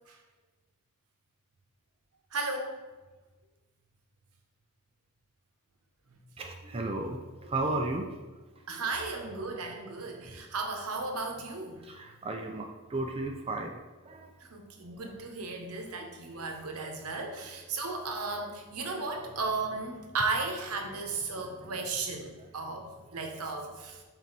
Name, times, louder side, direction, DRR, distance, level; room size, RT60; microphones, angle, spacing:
voice 1, 2.3-2.8 8.7-11.9 14.4-24.0, right 3 dB, 85° right, 3 dB, 0.9 m, -35 dB
voice 2, 6.4-8.1 8.7-8.9 11.8-14.3 16.0-16.5 16.8-17.3 18.8-19.0 19.3-19.4 22.6-22.7 23.1-23.2, right 2 dB, 25° right, 3 dB, 0.4 m, -35 dB
6.1 x 4.1 x 4.0 m, 1.2 s
head